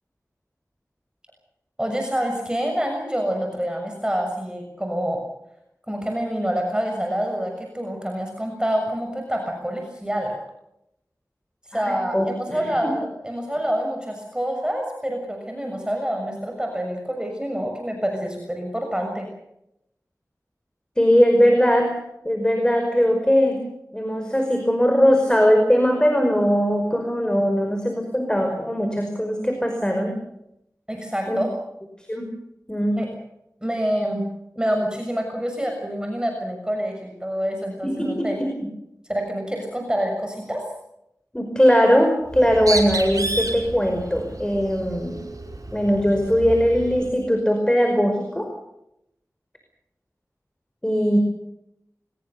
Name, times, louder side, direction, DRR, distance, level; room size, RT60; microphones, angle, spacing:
voice 1, 1.8-5.2 5.9-10.4 11.7-19.3 30.9-31.5 33.0-33.1 33.6-34.3 34.5-38.4 39.1-40.6, equal, 15° right, 3 dB, 6.6 m, -27 dB
voice 2, 11.7-12.9 21.0-22.0 22.2-23.6 23.9-30.2 31.3-31.4 32.1-32.3 32.7-33.0 37.8-38.5 41.3-45.2 45.7-48.5 50.8-51.2, equal, 10° left, 4 dB, 5.2 m, -20 dB
Bird, 42.3-47.1, right 2 dB, 65° right, 5.6 m, -31 dB
23.5 x 21.0 x 6.9 m, 0.81 s
wide cardioid pair, 40°, 6 cm